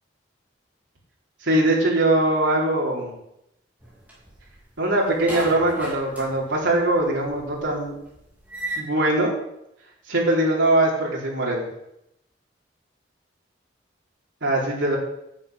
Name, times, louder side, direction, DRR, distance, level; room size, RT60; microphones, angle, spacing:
voice 1, 1.4-3.2 4.8-7.9 8.8-9.3 10.1-11.7 14.4-15.0, right 1 dB, 85° right, -3 dB, 4.2 m, -21 dB
sound 1, 3.8-4.7 5.1-8.8, right 1 dB, 10° right, 3.7 m, -35 dB
9.6 x 8.3 x 8.0 m, 0.80 s
head